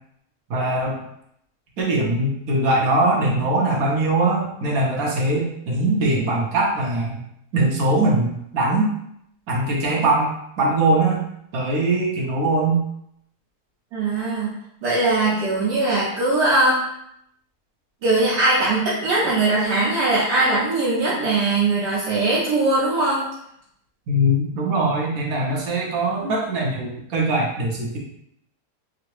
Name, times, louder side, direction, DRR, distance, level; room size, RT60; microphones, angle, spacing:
voice 1, 0.5-1.0 1.8-7.2 7.5-8.9 9.5-10.3 10.6-11.2 11.5-12.8 24.1-28.0, right 2 dB, 65° right, -3 dB, 1.1 m, -21 dB
voice 2, 13.9-14.5 14.8-16.8 18.0-23.3, right 2 dB, 80° right, -8 dB, 1.3 m, -20 dB
3.7 x 2.0 x 2.9 m, 0.75 s
omnidirectional pair, 1.8 m